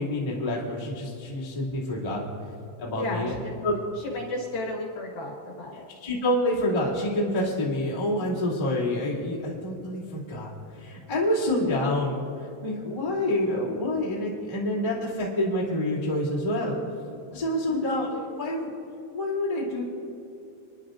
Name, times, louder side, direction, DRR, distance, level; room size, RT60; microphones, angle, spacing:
voice 1, 0.0-2.2 2.8-3.3 3.6-3.7 6.0-12.2 12.6-16.8 17.3-18.7 19.1-19.8, left 1 dB, 15° left, -7 dB, 1.3 m, -27 dB
voice 2, 3.0-3.6 4.0-5.8 17.7-18.1, left 2 dB, 65° left, -1 dB, 2.6 m, -34 dB
29.0 x 11.0 x 2.6 m, 2.8 s
omnidirectional pair, 5.6 m